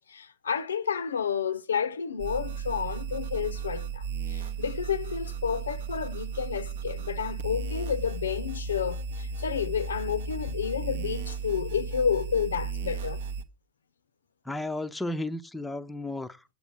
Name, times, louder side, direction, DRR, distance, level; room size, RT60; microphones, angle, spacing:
voice 1, 0.1-4.0 4.3-13.2, left 7 dB, 70° left, 0.5 m, -30 dB
sound 1, 2.2-13.4, right 5 dB, 60° right, 0.7 m, -35 dB
voice 2, 14.4-16.4, left 1 dB, 5° left, 0.6 m, -33 dB
8.0 x 6.6 x 6.9 m
figure-of-eight pair, 90°, 0 cm